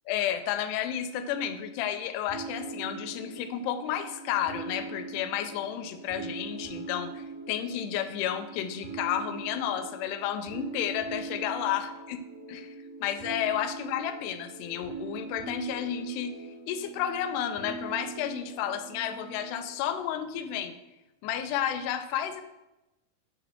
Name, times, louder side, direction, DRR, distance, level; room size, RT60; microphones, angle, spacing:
voice 1, 0.1-12.2 12.5-12.7 13.0-20.8 21.2-22.4, left 10 dB, 90° left, 8 dB, 2.6 m, -32 dB
sound 1, 2.3-19.7, right 4 dB, 75° right, 4.2 m, -42 dB
7.6 x 4.8 x 3.5 m, 0.98 s
omnidirectional pair, 4.6 m